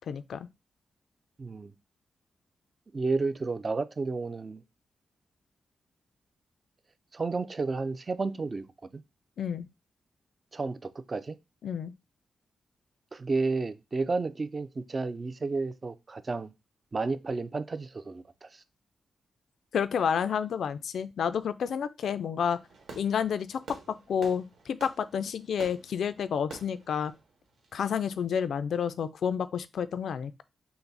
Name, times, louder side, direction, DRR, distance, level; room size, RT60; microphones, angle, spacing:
voice 1, 0.1-0.5 9.4-9.7 11.6-11.9 19.7-22.6 23.0-23.6 23.9-27.1 27.7-30.4, left 7 dB, 75° left, 0.3 m, -30 dB
voice 2, 1.4-1.7 2.9-4.6 7.1-8.6 8.9-9.0 10.5-11.4 13.1-16.5 16.9-18.6, right 3 dB, 30° right, 0.3 m, -31 dB
Fireworks, 22.6-28.2, right 4 dB, 85° right, 1.3 m, -49 dB
5.7 x 2.0 x 3.9 m
wide cardioid pair, 150°, 0 cm